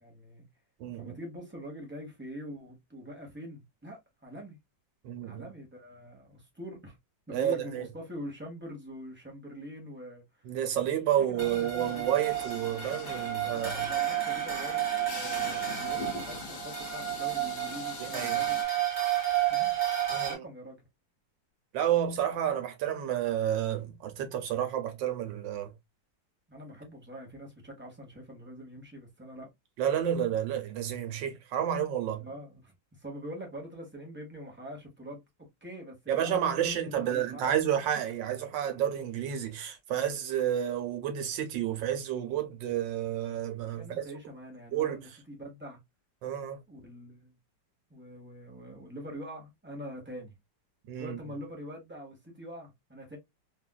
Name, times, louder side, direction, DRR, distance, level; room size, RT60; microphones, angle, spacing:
voice 1, 0.0-0.5 1.0-4.6 5.2-7.0 7.3-10.2 11.2-12.1 13.5-18.6 19.5-19.8 20.2-20.8 26.5-29.5 32.2-37.4 43.8-45.8 46.7-47.3 47.9-50.3 51.0-53.2, equal, 10° right, 0.6 m, -44 dB
voice 2, 0.8-1.1 5.0-5.4 7.3-7.8 10.4-13.8 15.5-15.6 18.1-18.4 20.1-20.4 21.7-25.7 29.8-32.3 36.1-44.0 44.7-45.0 46.2-46.6 50.9-51.2, right 10 dB, 75° right, 1.4 m, -30 dB
sound 1, 11.4-20.3, right 11 dB, 30° right, 1.0 m, -31 dB
sound 2, 11.8-18.6, left 6 dB, 65° left, 1.2 m, -44 dB
3.3 x 2.4 x 2.2 m
omnidirectional pair, 2.0 m